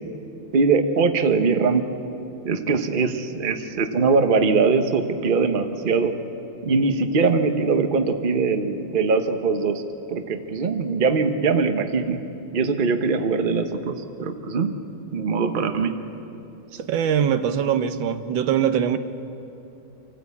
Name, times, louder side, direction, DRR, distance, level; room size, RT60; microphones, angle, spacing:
voice 1, 0.5-1.8 2.4-6.1 6.6-9.8 10.1-12.2 12.5-14.7 15.1-15.9, right 4 dB, 35° right, 7 dB, 1.0 m, -21 dB
voice 2, 16.7-19.0, right 8 dB, 85° right, 10 dB, 1.7 m, -22 dB
26.5 x 14.5 x 8.4 m, 2.8 s
omnidirectional pair, 2.0 m